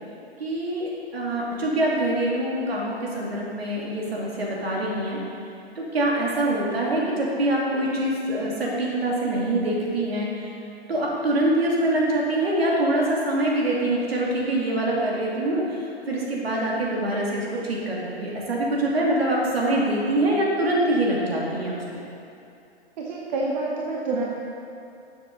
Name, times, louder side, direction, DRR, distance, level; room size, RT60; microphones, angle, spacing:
voice 1, 0.4-5.2 5.8-10.3 10.9-22.0, right 1 dB, 65° right, -3 dB, 2.5 m, -24 dB
voice 2, 23.0-24.3, right 2 dB, 40° right, -2 dB, 1.1 m, -27 dB
13.0 x 7.3 x 3.9 m, 2.6 s
figure-of-eight pair, 115°, 33 cm